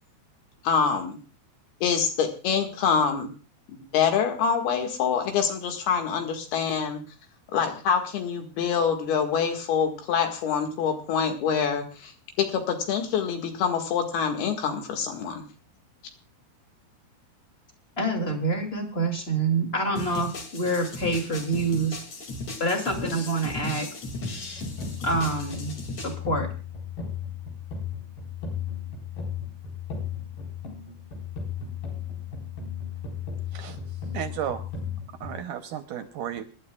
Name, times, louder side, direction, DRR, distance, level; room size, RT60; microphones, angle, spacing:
voice 1, 0.6-1.2 1.8-3.3 3.7-7.0 7.5-12.1 12.4-15.4, left 6 dB, 85° left, 4 dB, 3.8 m, -25 dB
voice 2, 18.0-22.0 22.6-23.9 25.0-26.5, right 2 dB, 20° left, 2 dB, 2.2 m, -27 dB
sound 1, 20.0-26.1, left 2 dB, 45° left, 3.2 m, -36 dB
sound 2, 24.3-35.4, left 7 dB, 70° left, 6.2 m, -35 dB
voice 3, 34.1-34.6 35.2-36.4, right 10 dB, 75° right, 8 dB, 2.1 m, -33 dB
26.0 x 12.0 x 2.4 m, 0.35 s
omnidirectional pair, 4.3 m